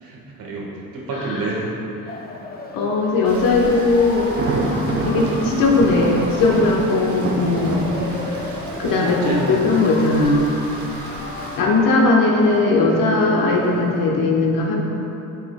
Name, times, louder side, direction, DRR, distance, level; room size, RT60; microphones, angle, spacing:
voice 1, 0.0-1.7 8.7-9.6 11.0-11.2, right 3 dB, 80° right, -3 dB, 1.5 m, -29 dB
voice 2, 1.1-1.5 2.7-4.3 4.6-7.8 8.8-10.5 11.6-14.8, left 3 dB, 70° left, -2 dB, 1.1 m, -18 dB
sound 1, 2.1-14.1, left 3 dB, 30° left, 0.5 m, -35 dB
Rain, 3.2-11.6, right 2 dB, 55° right, 1.1 m, -37 dB
Thunder, 4.2-10.0, right 2 dB, 35° right, 0.7 m, -27 dB
8.5 x 6.4 x 2.2 m, 3.0 s
cardioid pair, 125°, 35 cm